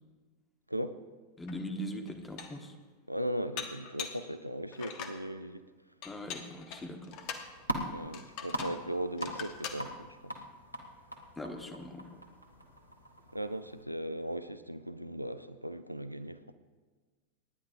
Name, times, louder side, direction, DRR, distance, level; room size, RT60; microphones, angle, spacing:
voice 1, 1.4-2.7 6.0-7.2 11.4-12.2, equal, 10° left, 5 dB, 1.4 m, -41 dB
Dishes pots and pans, 1.5-1.6 2.1-2.7 3.6-4.3 4.7-5.2 6.0-7.5 8.1-8.8 9.2-9.8, left 7 dB, 40° left, 1.2 m, -42 dB
voice 2, 3.1-5.6 7.9-10.3 13.3-16.5, right 1 dB, 90° right, 12 dB, 0.5 m, -38 dB
sound 1, 7.1-13.8, equal, 90° left, 1.4 m, -42 dB
26.5 x 10.5 x 2.7 m, 1.4 s
figure-of-eight pair, 90°, 0 cm